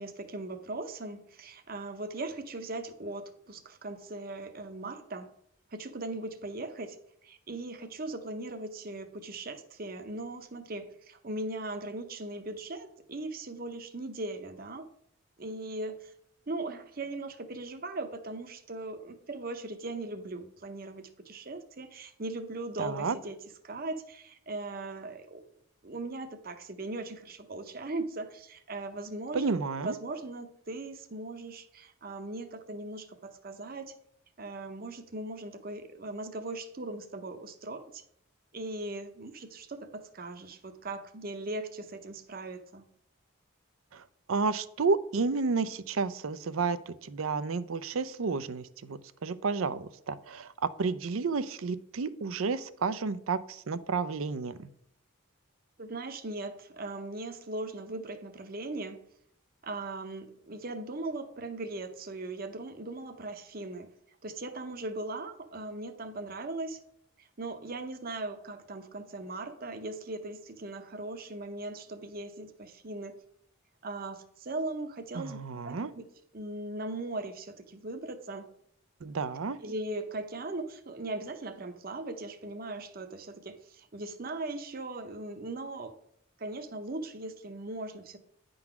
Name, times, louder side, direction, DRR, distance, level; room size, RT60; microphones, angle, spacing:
voice 1, 0.0-5.3 5.7-7.0 7.2-14.9 15.4-16.1 16.5-25.4 25.8-29.6 29.8-33.9 34.4-38.0 38.5-42.9 55.8-59.0 59.6-63.9 64.2-66.8 67.2-73.2 73.8-75.4 75.6-76.0 76.3-78.5 79.6-86.0 86.4-88.2, right 2 dB, 45° right, 9 dB, 0.8 m, -39 dB
voice 2, 22.8-23.2 29.3-29.9 43.9-44.0 44.3-50.5 50.8-54.7 75.2-75.9 79.0-79.6, right 4 dB, 80° right, 14 dB, 0.5 m, -31 dB
9.7 x 3.9 x 5.9 m, 0.71 s
head